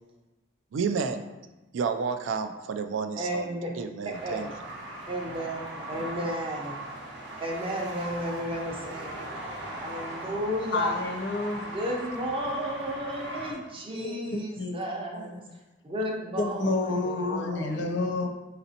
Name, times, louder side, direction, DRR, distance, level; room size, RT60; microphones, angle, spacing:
voice 1, 0.7-1.3 1.7-4.5, right 5 dB, 75° right, 8 dB, 0.3 m, -31 dB
voice 2, 3.2-3.7 4.0-4.5 5.1-6.7 7.4-9.4 9.7-11.0 11.6-15.4 15.8-17.9, equal, 25° right, 0 dB, 0.6 m, -33 dB
sound 1, 4.1-13.5, right 1 dB, 60° right, 0.7 m, -39 dB
voice 3, 10.7-11.7 13.5-13.6 13.9-14.8 15.1-15.3 16.4-18.3, left 3 dB, 65° left, 2 dB, 0.5 m, -29 dB
4.1 x 4.0 x 2.7 m, 1.1 s
head